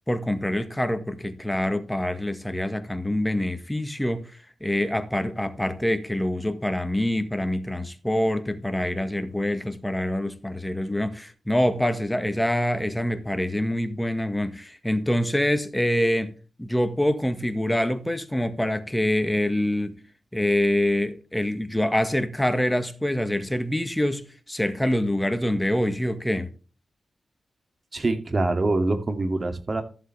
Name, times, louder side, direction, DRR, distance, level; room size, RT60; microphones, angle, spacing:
voice 1, 0.1-4.3 4.6-20.0 20.3-26.5, left 1 dB, 10° left, 1.7 m, -25 dB
voice 2, 27.9-29.8, right 2 dB, 45° right, 2.4 m, -24 dB
14.0 x 7.7 x 3.4 m
cardioid pair, 50°, 0 cm